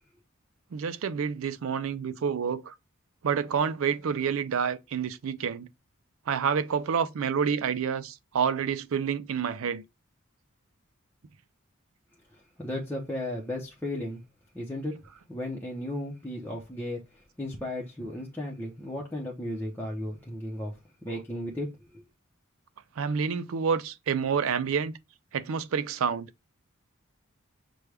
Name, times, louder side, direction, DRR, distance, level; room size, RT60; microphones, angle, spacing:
voice 1, 0.7-2.7 3.2-5.7 6.3-9.8 23.0-24.9 25.3-26.3, right 6 dB, 75° right, 0.4 m, -28 dB
voice 2, 12.6-14.2 14.5-14.9 15.3-17.0 17.4-20.7 21.0-21.7 21.9-22.0, left 1 dB, 10° left, 0.6 m, -34 dB
6.1 x 2.2 x 3.3 m
head